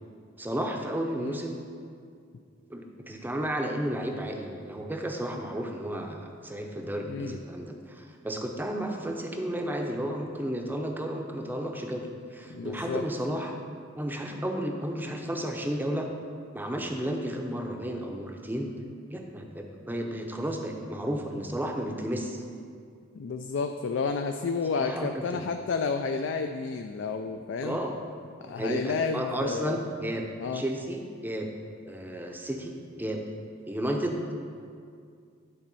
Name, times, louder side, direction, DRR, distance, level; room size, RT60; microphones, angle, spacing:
voice 1, 0.4-1.6 2.7-13.6 14.0-16.1 16.5-18.7 19.1-22.4 24.7-25.5 27.6-28.0 28.5-30.3 30.5-31.5 31.9-33.2 33.7-34.4, right 1 dB, 10° right, 3 dB, 0.6 m, -33 dB
voice 2, 12.5-13.0 23.1-27.8 28.4-29.8 30.4-30.6, left 4 dB, 60° left, 6 dB, 0.3 m, -31 dB
10.0 x 4.2 x 5.4 m, 2.3 s
head